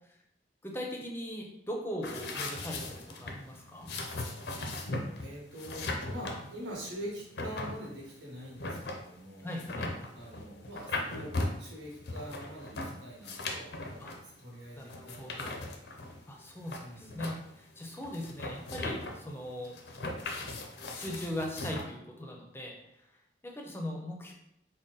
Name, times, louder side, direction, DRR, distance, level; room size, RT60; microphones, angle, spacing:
voice 1, 0.6-3.9 9.4-9.9 14.0-14.1 14.8-15.5 16.3-19.8 20.9-22.8 23.4-24.3, left 1 dB, 15° left, 0 dB, 0.5 m, -39 dB
sound 1, 2.0-21.8, left 2 dB, 65° left, 0.5 m, -38 dB
voice 2, 5.2-9.5 10.1-15.6 16.8-17.3, equal, 85° right, -3 dB, 1.3 m, -44 dB
3.9 x 2.2 x 3.8 m, 0.79 s
head